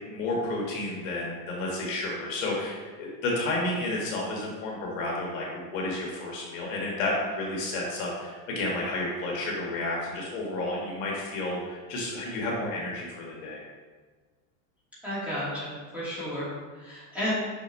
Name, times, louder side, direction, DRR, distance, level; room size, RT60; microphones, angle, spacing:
voice 1, 0.0-13.6, left 2 dB, 55° left, -3 dB, 1.6 m, -31 dB
voice 2, 15.0-16.5 16.8-17.3, equal, 5° right, -11 dB, 2.0 m, -32 dB
6.3 x 6.1 x 3.1 m, 1.4 s
supercardioid pair, 170°, 49 cm